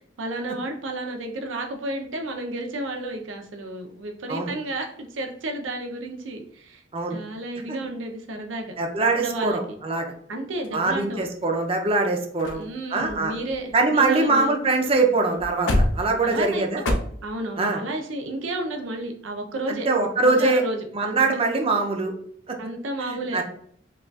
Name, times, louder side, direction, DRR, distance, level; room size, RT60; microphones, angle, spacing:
voice 1, 0.0-6.8 7.1-9.8 10.3-11.2 12.5-14.5 16.2-19.9 20.2-21.3 22.6-23.4, right 2 dB, 75° right, 3 dB, 0.6 m, -32 dB
voice 2, 8.8-10.1 10.7-12.6 12.9-13.3 13.7-16.8 17.6-17.8 19.7-20.6 20.9-22.1 22.5-22.6 23.0-23.4, right 3 dB, 30° right, 3 dB, 0.5 m, -23 dB
sound 1, 10.6-11.5 12.1-12.2 12.4-12.6 13.0-14.5 14.8-14.9 15.3-16.9, left 1 dB, 70° left, 0.5 m, -28 dB
4.8 x 2.4 x 2.3 m, 0.62 s
head